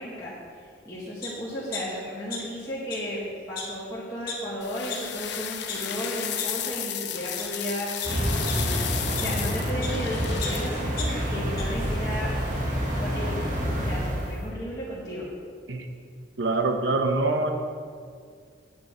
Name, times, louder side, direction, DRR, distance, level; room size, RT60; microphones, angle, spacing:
voice 1, 0.0-8.7 9.2-12.3 13.0-13.4 13.8-15.3, equal, 20° left, -9 dB, 1.9 m, -34 dB
sound 1, 1.2-1.3 1.7-2.6 2.9-3.0 3.6-3.7 4.3-4.4 4.9-5.0 5.5-5.8 6.4-6.5 7.1-7.4 8.0-10.0 10.4-11.6 12.0-12.1, left 5 dB, 50° left, 1.9 m, -36 dB
sound 2, 4.6-10.7, left 10 dB, 70° left, 0.7 m, -33 dB
sound 3, 8.0-14.4, equal, 45° right, 2.1 m, -28 dB
voice 2, 16.4-17.5, right 3 dB, 70° right, 5 dB, 1.1 m, -24 dB
8.6 x 6.0 x 8.1 m, 2.1 s
head